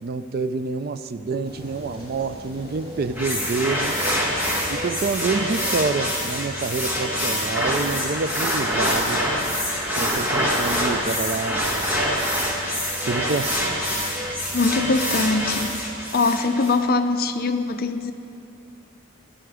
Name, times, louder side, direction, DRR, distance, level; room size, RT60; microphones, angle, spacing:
voice 1, 0.0-4.0 4.7-9.6 10.0-11.7 13.0-13.8, right 4 dB, 45° right, 12 dB, 0.4 m, -27 dB
sound 1, 1.4-15.7, left 1 dB, 25° right, 2.8 m, -40 dB
Machinery BR, 3.2-16.8, equal, 10° right, 1.6 m, -25 dB
voice 2, 14.5-15.7 16.1-18.1, left 3 dB, 45° left, 8 dB, 0.6 m, -22 dB
16.0 x 10.5 x 4.9 m, 2.7 s
head